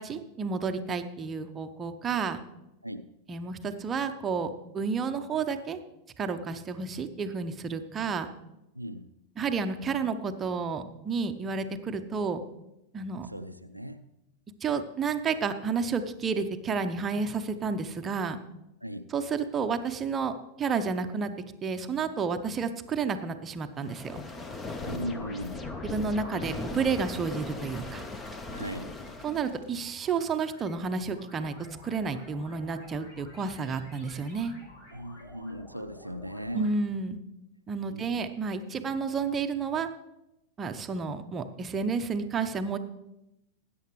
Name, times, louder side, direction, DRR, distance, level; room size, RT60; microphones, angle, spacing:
voice 1, 0.0-2.4 3.3-5.8 6.2-8.3 9.4-12.4 12.9-13.3 14.6-18.4 19.1-21.3 21.6-24.2 25.8-28.0 29.2-31.5 31.8-34.6 36.5-37.2 37.7-39.9 40.6-42.8, right 5 dB, 20° right, 8 dB, 0.9 m, -31 dB
voice 2, 8.7-9.1 13.2-14.1 18.8-19.1 24.8-25.7 28.5-28.9 34.9-36.7 37.9-38.2, equal, 90° right, 7 dB, 0.5 m, -38 dB
sound 1, 23.8-29.6, left 2 dB, 15° left, 1.1 m, -38 dB
sound 2, 29.0-36.7, left 1 dB, 55° left, 5.2 m, -52 dB
20.0 x 9.4 x 3.2 m, 0.91 s
figure-of-eight pair, 90°, 0 cm